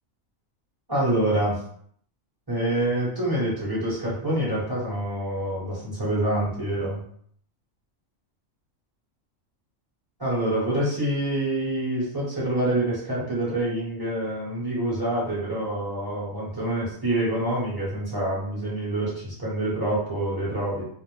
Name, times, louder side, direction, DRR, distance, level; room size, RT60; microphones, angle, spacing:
voice 1, 0.9-1.6 2.5-7.1 10.2-20.8, right 1 dB, 20° right, -7 dB, 0.8 m, -26 dB
2.4 x 2.0 x 3.0 m, 0.63 s
omnidirectional pair, 1.4 m